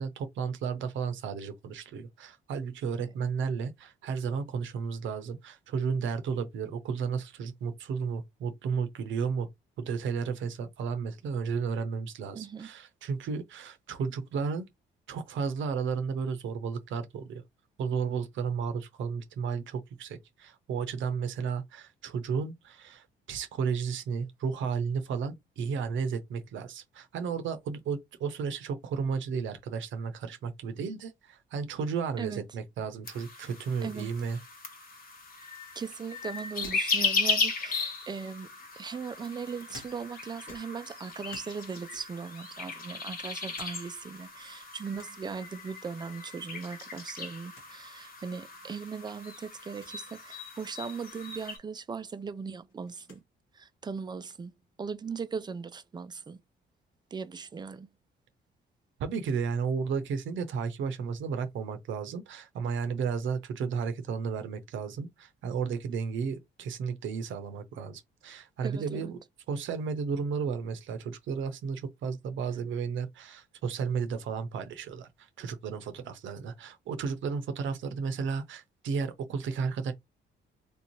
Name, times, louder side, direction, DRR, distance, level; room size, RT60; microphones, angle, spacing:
voice 1, 0.0-9.5 9.8-14.6 15.1-17.4 17.8-34.4 59.0-69.2 69.5-79.9, right 6 dB, 75° right, 0.7 m, -33 dB
voice 2, 12.3-12.7 32.2-32.4 33.8-34.1 35.8-38.5 38.8-53.2 53.6-54.5 54.8-56.4 57.1-57.9 68.6-69.1 72.5-72.6, right 5 dB, 20° right, 0.4 m, -39 dB
sound 1, 33.1-51.6, left 4 dB, 45° left, 1.1 m, -36 dB
sound 2, 36.6-37.8 38.6-40.2 40.5-41.6 41.9-42.3 42.8-43.8 44.1-44.2 45.0-45.2 46.7-47.0 47.3-47.4 47.5-47.7 48.5-48.6 49.7-50.0 51.7-51.8 52.1-53.3, left 3 dB, 85° left, 1.5 m, -52 dB
3.3 x 2.7 x 3.0 m
cardioid pair, 90°, 20 cm